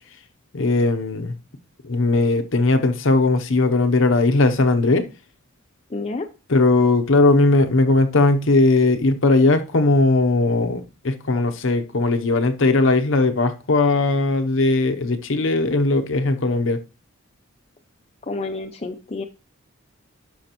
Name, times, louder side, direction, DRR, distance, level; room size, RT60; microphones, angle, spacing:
voice 1, 0.5-1.3 1.8-5.1 6.5-16.8, left 2 dB, 60° left, 0.7 m, -18 dB
voice 2, 5.9-6.3 18.2-19.2, left 3 dB, 30° left, 0.5 m, -29 dB
12.0 x 5.2 x 2.9 m
head